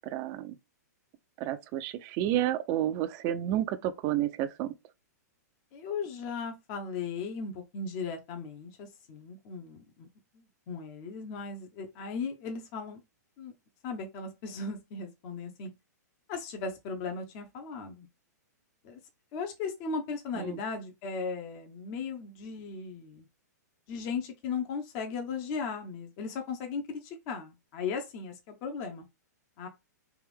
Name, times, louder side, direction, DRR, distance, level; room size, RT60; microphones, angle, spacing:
voice 1, 0.1-0.6 1.4-4.7 20.4-20.6, right 12 dB, 40° right, 0.5 m, -30 dB
voice 2, 5.7-10.1 10.3-13.0 13.4-13.5 13.8-15.7 16.3-18.1 18.8-19.0 19.3-23.2 23.9-29.0 29.6-29.7, left 5 dB, 40° left, 0.9 m, -37 dB
3.5 x 2.6 x 3.4 m
hypercardioid pair, 120°, 10 cm